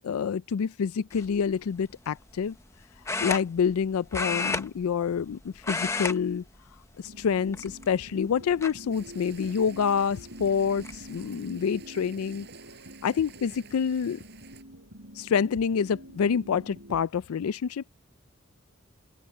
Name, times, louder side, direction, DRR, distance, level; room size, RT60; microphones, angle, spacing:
voice 1, 0.0-2.6 3.2-6.4 7.0-12.5 13.0-14.2 15.1-17.9, left 6 dB, 85° left, 0.4 m, -27 dB
sound 1, 1.1-1.4 3.0-3.8 4.1-5.3 5.6-6.2 6.5-6.7 7.5-8.0 8.6-8.7 10.2-10.3 10.6-11.0, left 3 dB, 15° left, 0.8 m, -31 dB
sound 2, 7.0-17.0, right 1 dB, 70° right, 7.3 m, -48 dB
sound 3, 8.9-14.6, right 6 dB, 50° right, 6.0 m, -52 dB
open air
head